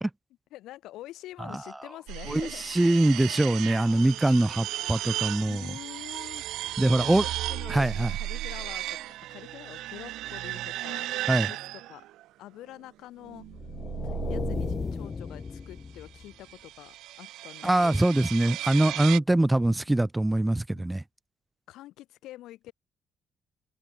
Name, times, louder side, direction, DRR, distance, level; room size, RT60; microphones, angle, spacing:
voice 1, 0.5-2.6 5.5-6.4 6.9-11.1 11.4-12.0 12.4-13.5 14.0-18.0 20.7-20.9 21.7-22.7, left 15 dB, 90° left, 5.4 m, -46 dB
sound 1, 2.1-12.2 13.2-15.1 16.2-19.2, right 15 dB, 90° right, 0.8 m, -35 dB
voice 2, 2.3-5.6 6.8-7.2 7.7-8.1 11.3-11.5 17.6-21.0, right 1 dB, 10° right, 0.6 m, -23 dB
sound 2, 13.5-16.4, left 5 dB, 35° left, 0.8 m, -35 dB
cardioid pair, 90°, 0 cm